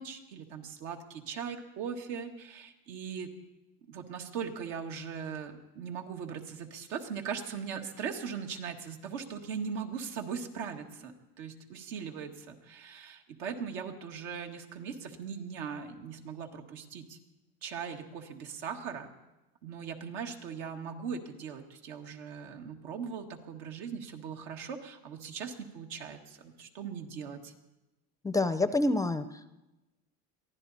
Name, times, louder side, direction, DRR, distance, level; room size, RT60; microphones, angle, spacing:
voice 1, 0.0-3.3 3.9-17.2 17.6-19.1 19.6-27.5, right 6 dB, 80° right, 3 dB, 2.0 m, -39 dB
voice 2, 28.2-29.5, left 2 dB, 10° left, 12 dB, 0.5 m, -28 dB
23.0 x 15.0 x 4.2 m, 1.0 s
supercardioid pair, 130°, 33 cm